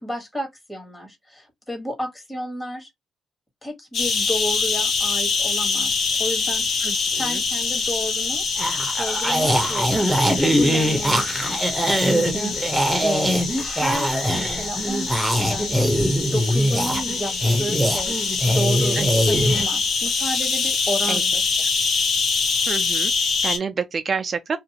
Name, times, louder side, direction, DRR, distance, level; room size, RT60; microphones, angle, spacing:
voice 1, 0.0-2.9 3.6-5.9 6.2-6.8 7.2-8.4 8.9-11.6 12.0-15.8 16.3-19.0 19.3-21.4, equal, 15° left, 1.3 m, -32 dB
sound 1, 3.9-23.6, left 4 dB, 65° left, 0.9 m, -25 dB
voice 2, 6.8-7.4 18.9-19.1 21.1-21.2 21.6-21.7 22.7-24.6, right 5 dB, 40° right, 0.3 m, -29 dB
sound 2, 8.6-19.6, equal, 5° right, 0.8 m, -22 dB
2.5 x 2.4 x 2.8 m
cardioid pair, 90°, 0 cm